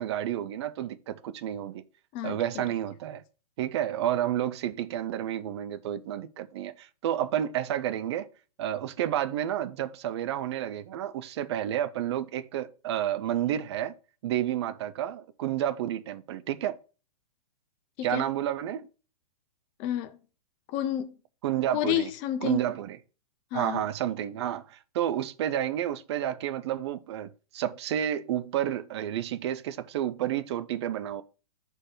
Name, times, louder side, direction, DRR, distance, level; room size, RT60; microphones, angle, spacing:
voice 1, 0.0-1.8 2.2-3.2 3.6-8.3 8.6-13.9 14.2-16.8 18.0-18.9 21.4-22.1 22.4-23.0 23.5-31.2, right 11 dB, 40° right, 0.4 m, -30 dB
voice 2, 2.1-2.6 18.0-18.2 19.8-20.2 20.7-21.2 21.7-22.7 23.5-23.8, left 11 dB, 25° left, 0.5 m, -30 dB
5.9 x 4.5 x 4.9 m
hypercardioid pair, 150°, 21 cm